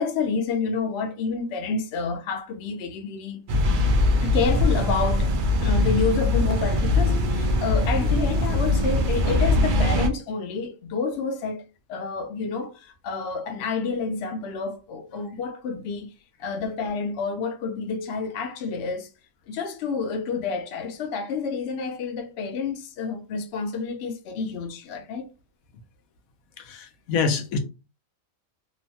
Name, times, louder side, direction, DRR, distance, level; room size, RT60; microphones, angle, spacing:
voice 1, 0.0-3.4 4.2-5.3 5.6-16.1 16.4-19.1 19.5-25.3, left 5 dB, 60° left, 0.7 m, -29 dB
sound 1, 3.5-10.1, left 2 dB, 75° right, 0.4 m, -21 dB
voice 2, 26.6-27.6, left 5 dB, 85° left, 1.1 m, -26 dB
3.0 x 2.1 x 2.7 m
omnidirectional pair, 1.4 m